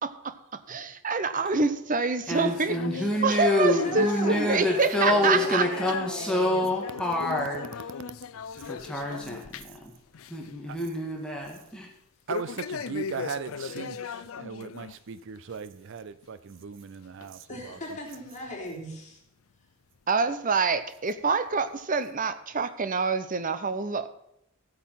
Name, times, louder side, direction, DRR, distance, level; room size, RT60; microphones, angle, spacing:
voice 1, 0.0-5.7 20.1-24.1, right 4 dB, 40° right, 0.9 m, -27 dB
sound 1, 2.3-9.8 10.1-10.5 10.8-10.9 12.3-15.0 15.4-15.5 16.2-16.3 17.2-17.3 18.1-18.2, left 6 dB, 90° left, 0.5 m, -38 dB
voice 2, 2.3-7.8 8.6-9.9 10.3-11.9, left 1 dB, 5° left, 1.9 m, -27 dB
voice 3, 3.8-6.6 17.5-19.2, left 1 dB, 35° left, 3.8 m, -37 dB
voice 4, 12.3-17.8, right 6 dB, 65° right, 0.5 m, -38 dB
15.0 x 8.4 x 5.8 m
head